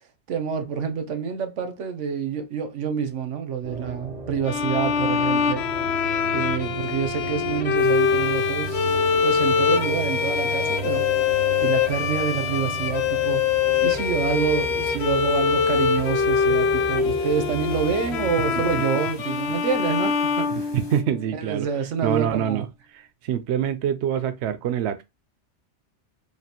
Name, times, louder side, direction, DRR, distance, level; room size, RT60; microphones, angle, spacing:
voice 1, 0.3-5.6 6.3-8.9 9.2-11.1 11.6-13.5 13.8-20.7 21.4-22.7, right 7 dB, 85° right, 1.2 m, -27 dB
sound 1, 3.6-18.9, right 2 dB, 40° right, 0.7 m, -35 dB
sound 2, 4.4-21.3, left 6 dB, 65° left, 0.9 m, -24 dB
sound 3, 7.7-21.0, left 3 dB, 30° left, 0.6 m, -46 dB
voice 2, 20.7-21.7 22.0-22.7 22.9-25.0, right 9 dB, 70° right, 0.8 m, -25 dB
5.0 x 2.8 x 2.9 m
omnidirectional pair, 1.2 m